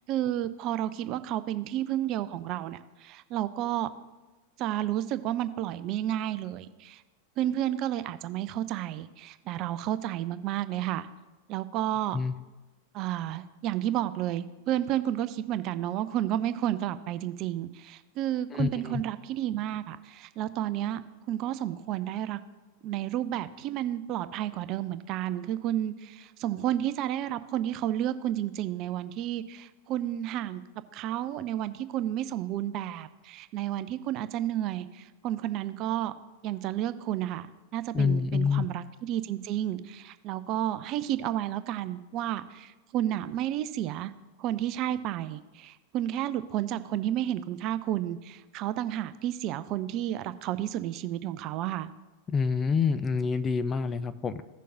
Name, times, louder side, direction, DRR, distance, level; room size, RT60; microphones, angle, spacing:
voice 1, 0.1-3.9 4.6-7.0 7.4-11.1 11.5-12.2 12.9-21.0 21.3-22.4 22.8-30.6 30.9-36.1 36.4-37.5 37.7-44.1 44.4-51.9, right 12 dB, 40° right, 13 dB, 0.4 m, -31 dB
voice 2, 18.5-19.0 37.9-38.7 52.3-54.4, left 5 dB, 20° left, 11 dB, 0.4 m, -27 dB
16.5 x 6.4 x 2.6 m, 1.1 s
figure-of-eight pair, 90°, 0 cm